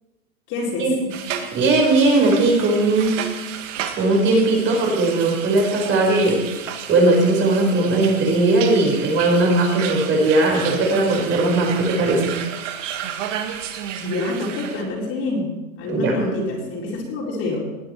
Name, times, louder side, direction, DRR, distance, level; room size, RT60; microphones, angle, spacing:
voice 1, 0.5-0.9 14.0-15.5 15.8-17.6, left 2 dB, 30° left, -4 dB, 4.4 m, -26 dB
sound 1, 1.1-14.8, right 9 dB, 60° right, 2.0 m, -32 dB
voice 2, 1.5-3.1 4.0-6.4 6.9-12.3 15.9-16.1, right 2 dB, 25° right, 0 dB, 4.9 m, -18 dB
20.0 x 11.0 x 4.6 m, 1.1 s
hypercardioid pair, 145°, 43 cm